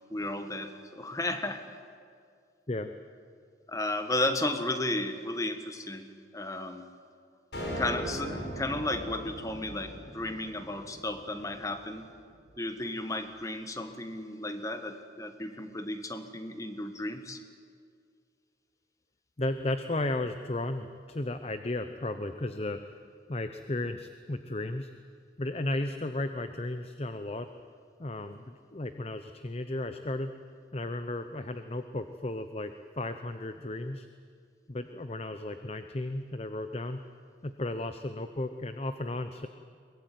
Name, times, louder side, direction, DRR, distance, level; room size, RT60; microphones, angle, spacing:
voice 1, 0.1-1.6 3.7-6.1 6.3-6.8 7.8-12.0 12.6-17.4, left 2 dB, 20° left, 8 dB, 1.5 m, -33 dB
sound 1, 7.5-11.9, equal, 75° left, 5.5 m, -39 dB
voice 2, 19.4-23.0 23.3-24.9 25.4-27.5 28.0-30.3 30.7-34.1 34.7-37.0 37.4-39.5, left 2 dB, 35° left, 9 dB, 0.8 m, -34 dB
23.0 x 21.0 x 9.3 m, 2.2 s
head